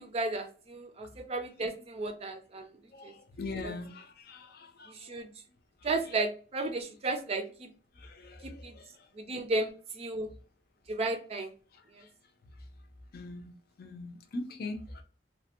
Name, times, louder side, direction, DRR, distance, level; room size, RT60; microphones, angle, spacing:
voice 1, 0.0-2.8 3.0-3.1 3.6-3.7 4.9-5.3 5.8-7.7 8.4-8.7 9.1-10.3 10.9-11.5 11.9-12.1, right 2 dB, 35° right, 7 dB, 0.4 m, -34 dB
voice 2, 2.9-5.2 7.9-9.1 11.7-12.1 13.1-15.0, left 2 dB, 60° left, 5 dB, 0.5 m, -42 dB
3.0 x 2.1 x 2.9 m, 0.37 s
head